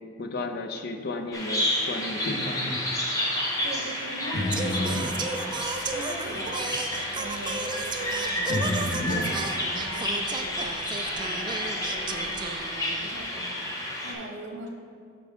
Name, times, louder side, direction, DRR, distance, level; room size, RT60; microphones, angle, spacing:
voice 1, 0.2-2.6, left 2 dB, 55° left, 6 dB, 0.6 m, -33 dB
Bird vocalization bird call bird song, 1.3-14.1, left 1 dB, 20° left, 1.0 m, -30 dB
sound 1, 2.3-2.8 4.3-5.2 6.3-6.4 6.7-6.8 8.5-9.4 10.6-11.0, left 1 dB, 80° left, 0.8 m, -30 dB
voice 2, 3.6-5.6 5.9-6.8 7.1-14.7, right 1 dB, 80° right, 1 dB, 1.1 m, -41 dB
Singing, 4.5-13.2, right 4 dB, 25° right, 0.3 m, -35 dB
8.2 x 6.0 x 3.6 m, 2.3 s
head